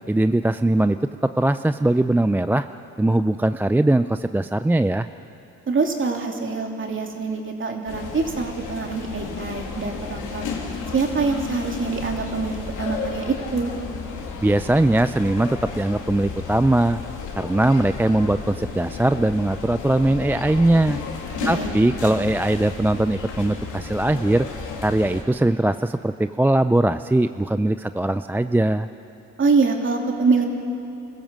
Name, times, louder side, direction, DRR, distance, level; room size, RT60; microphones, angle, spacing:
voice 1, 0.1-1.0 1.4-2.7 3.0-5.1 14.4-17.0 17.4-21.0 21.5-24.5 24.8-28.9, right 1 dB, 5° right, 11 dB, 0.4 m, -20 dB
voice 2, 5.7-10.5 10.9-13.7 21.4-21.7 29.4-30.5, right 4 dB, 40° right, 2 dB, 3.0 m, -24 dB
sound 1, 7.9-25.2, left 5 dB, 80° left, 3.0 m, -33 dB
27.0 x 15.0 x 7.5 m, 2.8 s
cardioid pair, 90°, 30 cm